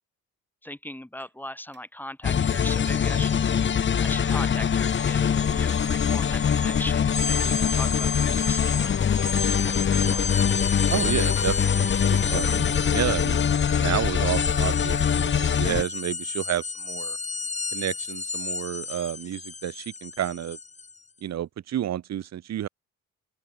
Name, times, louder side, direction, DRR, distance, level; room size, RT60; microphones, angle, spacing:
voice 1, 0.6-8.9 9.7-10.3, left 1 dB, 5° left, 5.5 m, -39 dB
sound 1, 1.2-1.4 1.7-1.9 2.3-2.5 2.9-3.0 3.5-3.7 4.0-4.2 4.7-4.8 5.2-5.3 5.8-6.0 6.4-6.5 7.0-7.1 7.5-7.7 8.1-8.3 8.7-8.8 9.3-9.5 9.8-10.0 10.4-10.5, right 5 dB, 35° right, 7.5 m, -58 dB
sound 2, 2.2-15.8, left 7 dB, 40° left, 1.0 m, -23 dB
sound 3, 3.3-3.4 3.7-21.0, left 4 dB, 25° left, 1.5 m, -33 dB
voice 2, 10.9-13.4 13.8-17.2 17.7-20.6 21.2-22.7, right 11 dB, 60° right, 1.4 m, -30 dB
open air
cardioid pair, 90°, 30 cm